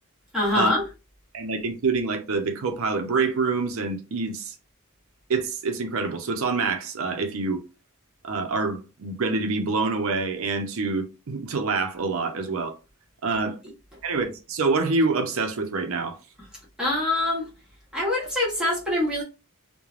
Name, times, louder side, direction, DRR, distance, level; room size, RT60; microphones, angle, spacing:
voice 1, 0.3-0.9 16.8-17.5 17.9-19.2, left 1 dB, 5° right, 0.9 m, -24 dB
voice 2, 1.3-4.5 5.3-7.6 8.2-12.8 13.2-13.6 14.0-16.2, right 4 dB, 65° right, 0.6 m, -26 dB
3.1 x 2.1 x 2.4 m
head